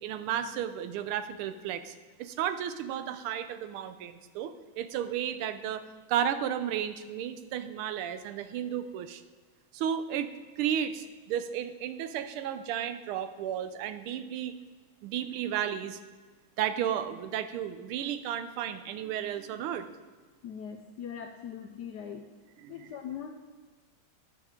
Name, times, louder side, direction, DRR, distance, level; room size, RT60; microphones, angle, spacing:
voice 1, 0.0-9.2 9.7-14.6 15.0-16.0 16.6-19.9 22.6-23.0, right 9 dB, 90° right, 11 dB, 1.5 m, -33 dB
voice 2, 20.4-22.3 22.7-23.3, left 8 dB, 75° left, 4 dB, 0.9 m, -40 dB
9.9 x 7.2 x 3.7 m, 1.4 s
omnidirectional pair, 2.3 m